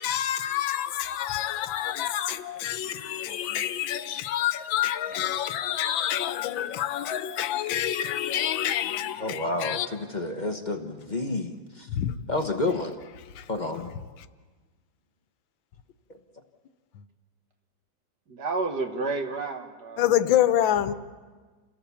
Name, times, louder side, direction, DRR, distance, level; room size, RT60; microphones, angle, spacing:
voice 1, 0.0-9.9 11.9-12.1 13.3-13.5 14.2-14.3 20.0-20.9, left 11 dB, 90° left, 1.6 m, -27 dB
voice 2, 9.2-11.9 12.3-13.0 13.5-13.9, left 2 dB, 30° left, 1.0 m, -30 dB
voice 3, 18.3-20.0, right 3 dB, 60° right, 2.1 m, -30 dB
29.0 x 17.0 x 7.0 m
omnidirectional pair, 2.0 m